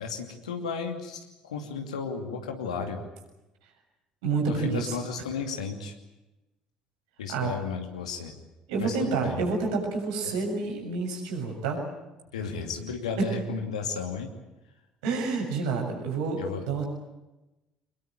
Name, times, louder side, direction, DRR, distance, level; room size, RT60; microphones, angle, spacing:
voice 1, 0.0-3.0 4.5-5.9 7.2-8.3 8.8-9.4 10.2-10.3 12.3-14.3 16.4-16.6, left 5 dB, 80° left, 4 dB, 2.6 m, -34 dB
voice 2, 4.2-5.0 7.3-7.5 8.7-11.8 13.2-13.3 15.0-16.8, right 4 dB, 70° right, 1 dB, 6.9 m, -28 dB
24.5 x 21.0 x 9.1 m, 1.0 s
figure-of-eight pair, 55°, 4 cm